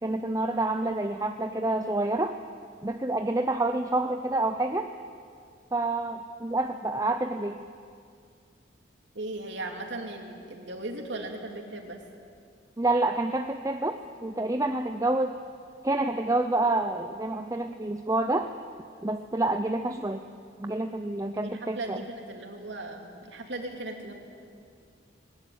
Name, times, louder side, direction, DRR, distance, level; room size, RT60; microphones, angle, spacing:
voice 1, 0.0-2.4 2.8-4.9 5.7-7.6 12.8-15.4 15.8-18.5 19.0-20.2 20.6-22.0, right 2 dB, 15° right, 7 dB, 0.6 m, -28 dB
voice 2, 9.1-12.0 21.4-24.1, right 2 dB, 65° right, 3 dB, 2.8 m, -37 dB
20.0 x 18.0 x 9.3 m, 2.2 s
head